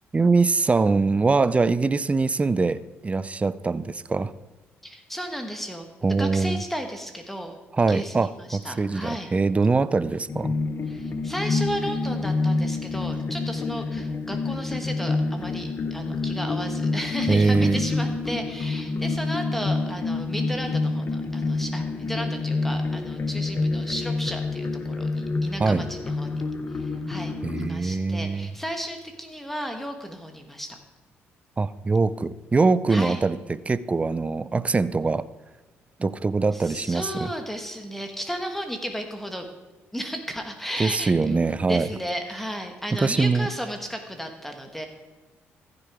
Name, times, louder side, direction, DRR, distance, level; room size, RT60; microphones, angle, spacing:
voice 1, 0.1-4.3 6.0-6.6 7.7-10.5 17.3-17.8 25.6-25.8 27.4-28.5 31.6-35.3 36.0-37.3 40.8-41.9 43.0-43.5, right 3 dB, 25° right, 16 dB, 0.5 m, -23 dB
voice 2, 4.8-7.6 7.9-9.3 10.9-26.4 26.7-30.8 32.9-33.3 36.5-39.5 39.9-44.9, equal, 5° left, 4 dB, 1.4 m, -34 dB
sound 1, 10.3-27.7, left 3 dB, 40° left, 0.8 m, -28 dB
15.0 x 6.8 x 4.9 m, 1.2 s
supercardioid pair, 65°, 5 cm